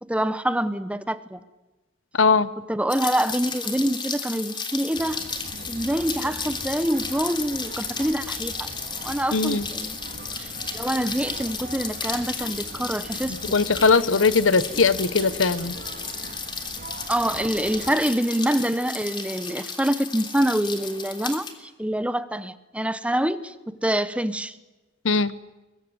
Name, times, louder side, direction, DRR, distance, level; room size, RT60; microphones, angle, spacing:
voice 1, 0.0-1.4 2.7-5.2 5.7-8.7 9.0-10.0 10.4-13.6 17.1-24.5, right 1 dB, 5° right, 0.9 m, -26 dB
voice 2, 2.1-2.5 9.3-9.7 13.5-15.7 25.0-25.3, left 4 dB, 85° left, 1.1 m, -20 dB
Rain, 2.9-21.5, left 5 dB, 25° left, 3.1 m, -34 dB
sound 1, 4.9-17.9, right 2 dB, 50° right, 2.8 m, -41 dB
23.0 x 22.0 x 9.6 m
head